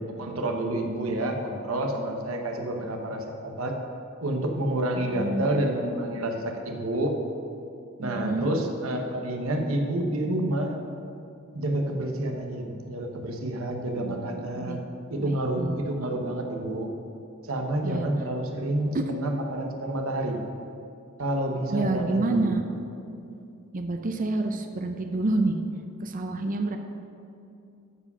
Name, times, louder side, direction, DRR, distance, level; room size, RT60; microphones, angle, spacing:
voice 1, 0.0-3.8 4.2-7.2 8.0-10.7 11.5-14.8 15.1-16.9 17.5-20.4 21.2-22.5, right 1 dB, 80° right, 3 dB, 1.1 m, -29 dB
voice 2, 5.0-5.5 8.0-8.5 14.0-14.8 15.2-15.8 17.8-18.1 18.9-19.0 21.7-22.6 23.7-25.6 26.0-26.8, right 2 dB, 40° right, 5 dB, 0.6 m, -28 dB
13.5 x 4.9 x 5.6 m, 2.6 s
head